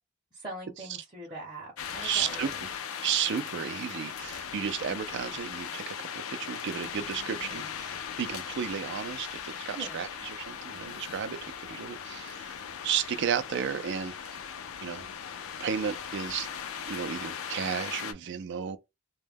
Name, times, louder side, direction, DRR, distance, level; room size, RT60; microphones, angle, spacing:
voice 1, 0.3-2.5 7.2-7.7 9.8-10.0, right 2 dB, 25° right, 0.7 m, -43 dB
sound 1, 1.8-18.1, left 7 dB, 85° left, 0.4 m, -39 dB
voice 2, 2.0-2.5 3.0-14.2 14.8-15.1 15.6-16.5 16.9-18.8, right 8 dB, 60° right, 0.4 m, -33 dB
2.2 x 2.1 x 3.3 m
head